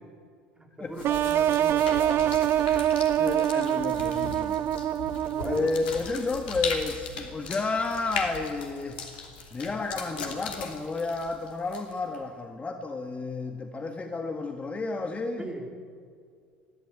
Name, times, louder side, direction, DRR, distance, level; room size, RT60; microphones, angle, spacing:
voice 1, 0.5-3.2 5.3-5.7 15.4-15.7, right 2 dB, 15° right, 2 dB, 4.5 m, -40 dB
sound 1, 1.0-12.2, left 4 dB, 70° left, 3.0 m, -38 dB
sound 2, 1.0-5.9, right 11 dB, 45° right, 0.6 m, -25 dB
voice 2, 3.2-4.6 5.5-9.0 9.5-15.5, left 3 dB, 25° left, 5 dB, 1.8 m, -31 dB
22.0 x 14.5 x 8.9 m, 2.2 s
figure-of-eight pair, 65°, 6 cm